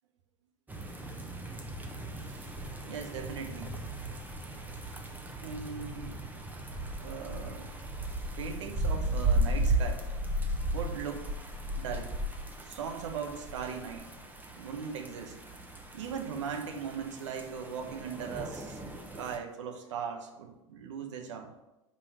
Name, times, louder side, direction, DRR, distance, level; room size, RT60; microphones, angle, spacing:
sound 1, 0.7-19.4, right 1 dB, 10° right, 1.0 m, -35 dB
voice 1, 2.2-2.5 2.9-3.8 5.4-6.2 7.0-10.1 10.7-11.3 11.8-12.2 12.6-14.1 14.6-15.3 15.9-18.8 19.1-21.5, right 6 dB, 70° right, 5 dB, 1.1 m, -39 dB
5.5 x 5.0 x 6.5 m, 0.96 s
hypercardioid pair, 85°, 16 cm